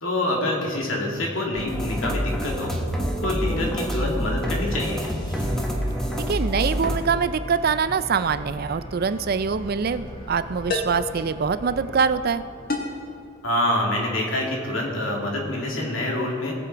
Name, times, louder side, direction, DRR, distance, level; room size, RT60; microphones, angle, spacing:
voice 1, 0.0-2.8 3.2-5.1 13.4-16.5, left 1 dB, 85° left, -1 dB, 2.5 m, -26 dB
sound 1, 1.6-7.0, equal, 5° left, 1.2 m, -27 dB
sound 2, 4.4-13.5, equal, 25° left, 1.6 m, -40 dB
voice 2, 6.3-12.4, right 5 dB, 50° right, 13 dB, 0.4 m, -24 dB
sound 3, 9.1-9.3 10.7-11.1 12.7-13.1, left 2 dB, 50° left, 1.5 m, -28 dB
19.0 x 7.2 x 4.6 m, 2.4 s
head